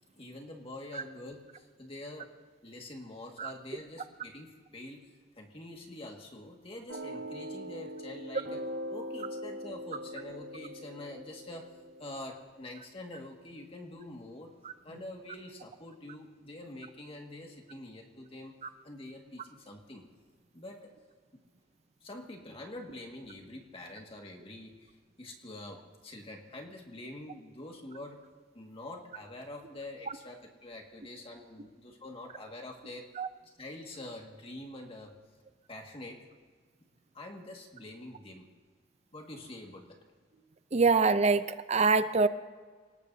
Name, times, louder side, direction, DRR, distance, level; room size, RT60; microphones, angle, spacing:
voice 1, 0.2-2.3 2.6-5.1 5.4-8.6 8.9-11.7 12.0-14.5 14.8-18.5 18.8-20.0 20.5-20.9 21.3-21.4 22.0-24.9 25.2-28.2 28.5-33.1 33.6-35.1 35.7-36.3 37.1-38.5 39.1-40.0, left 1 dB, 30° left, 1 dB, 1.9 m, -45 dB
sound 1, 6.9-12.4, equal, 75° right, 6.2 m, -42 dB
voice 2, 40.7-42.3, right 4 dB, 35° right, 12 dB, 0.6 m, -24 dB
27.5 x 19.0 x 2.8 m, 1.5 s
head